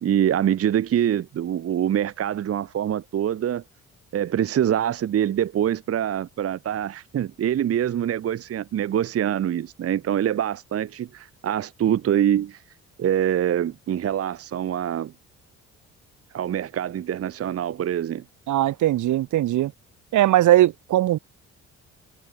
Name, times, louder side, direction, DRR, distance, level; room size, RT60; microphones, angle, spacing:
voice 1, 0.0-3.6 4.1-12.6 13.0-15.1 16.3-18.2, right 10 dB, 50° right, 0.9 m, -24 dB
voice 2, 18.5-19.7 20.1-21.2, right 14 dB, 75° right, 1.8 m, -19 dB
cardioid pair, 90°, 30 cm